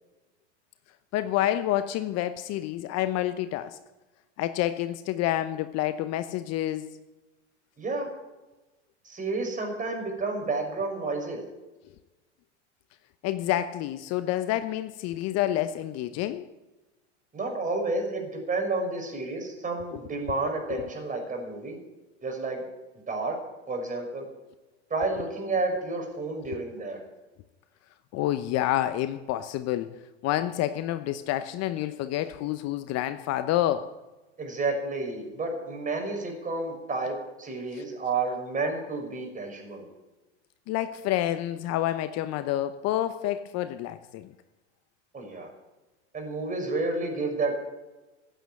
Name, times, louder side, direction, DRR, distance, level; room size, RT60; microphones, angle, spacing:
voice 1, 1.1-3.8 4.4-6.9 13.2-16.5 20.7-20.9 28.1-33.9 37.7-37.8 40.7-44.3, left 13 dB, 45° left, 12 dB, 0.9 m, -28 dB
voice 2, 7.8-8.1 9.0-11.4 17.3-21.8 22.2-22.6 23.1-23.4 23.7-24.3 24.9-27.0 34.4-39.8 45.1-45.5 46.1-47.6, right 3 dB, 20° right, 3 dB, 5.6 m, -30 dB
15.5 x 9.1 x 8.8 m, 1.1 s
hypercardioid pair, 90°, 36 cm